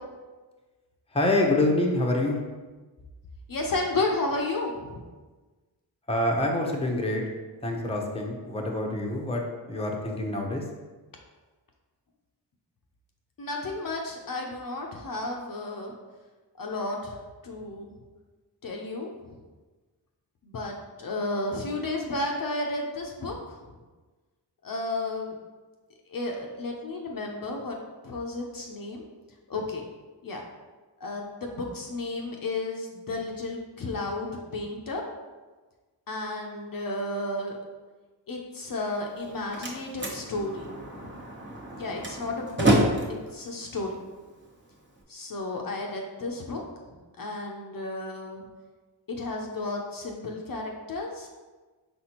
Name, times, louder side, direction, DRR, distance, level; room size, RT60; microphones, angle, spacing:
voice 1, 1.1-2.4 6.1-7.2 7.6-9.4 9.7-10.6, left 1 dB, 15° left, 0 dB, 0.7 m, -26 dB
voice 2, 3.5-5.0 13.4-15.9 16.6-17.1 17.4-17.9 18.6-19.3 20.4-23.3 24.6-25.3 26.1-27.8 28.0-29.0 29.5-29.8 30.2-30.4 31.0-35.0 36.1-37.5 38.3-40.7 40.9-41.1 41.7-42.7 43.3-44.0 45.1-46.6 47.2-48.4 49.1-51.3, left 2 dB, 50° left, 0 dB, 0.6 m, -32 dB
Slam, 39.1-45.0, right 1 dB, 25° right, 1.0 m, -29 dB
4.2 x 3.4 x 2.9 m, 1.3 s
cardioid pair, 45°, 45 cm